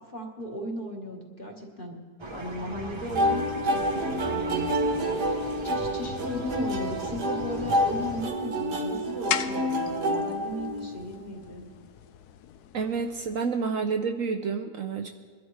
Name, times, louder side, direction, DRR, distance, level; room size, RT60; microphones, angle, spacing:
voice 1, 0.0-2.0 2.3-11.7, left 1 dB, 35° left, 1 dB, 1.5 m, -37 dB
sound 1, 2.2-8.2, right 1 dB, 25° right, 0.7 m, -39 dB
sound 2, 3.2-11.1, equal, 80° right, 1.7 m, -28 dB
sound 3, 8.4-13.4, left 10 dB, 75° left, 1.1 m, -38 dB
voice 2, 12.7-15.1, right 5 dB, 65° right, 4 dB, 0.9 m, -29 dB
22.5 x 11.5 x 3.2 m, 1.5 s
omnidirectional pair, 1.7 m